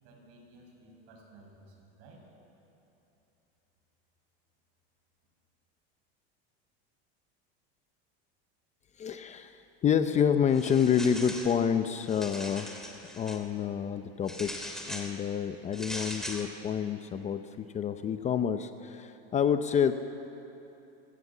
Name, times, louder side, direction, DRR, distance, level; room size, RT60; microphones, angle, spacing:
voice 1, 0.0-2.2, right 2 dB, 55° right, 0 dB, 7.2 m, -55 dB
voice 2, 9.0-12.9 13.1-19.9, left 8 dB, 25° left, 9 dB, 0.7 m, -28 dB
sound 1, 10.5-11.6 12.0-13.4 14.3-15.1 15.7-16.5, left 1 dB, ahead, 2.5 m, -40 dB
27.0 x 17.0 x 7.3 m, 2.9 s
supercardioid pair, 145°, 30 cm